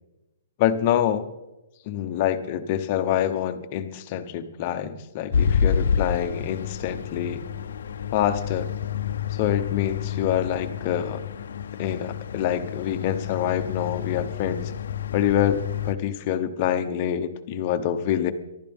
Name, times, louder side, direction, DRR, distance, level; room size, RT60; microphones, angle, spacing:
voice 1, 0.6-1.3 1.9-7.4 8.1-8.7 9.3-11.2 11.8-14.7 15.1-18.3, left 10 dB, 25° left, 9 dB, 0.8 m, -26 dB
sound 1, 5.3-15.9, left 7 dB, 60° left, 0.6 m, -29 dB
24.5 x 12.0 x 3.5 m, 0.97 s
hypercardioid pair, 175°, 0 cm